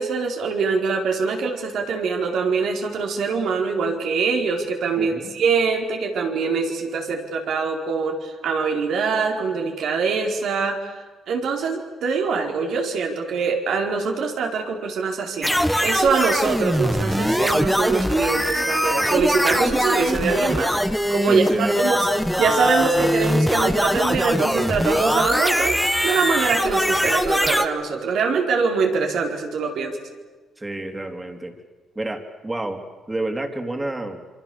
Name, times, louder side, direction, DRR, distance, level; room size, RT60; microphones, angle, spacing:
voice 1, 0.0-11.0 11.3-15.5 15.8-22.1 22.4-30.0, right 5 dB, 75° right, 2 dB, 4.5 m, -23 dB
voice 2, 5.0-5.3 21.2-22.1 30.6-31.6 31.9-32.8 33.1-34.2, right 2 dB, 15° right, 5 dB, 3.3 m, -29 dB
sound 1, 15.4-27.7, equal, ahead, 1.5 m, -21 dB
27.0 x 25.0 x 7.1 m, 1.3 s
cardioid pair, 90°, 0 cm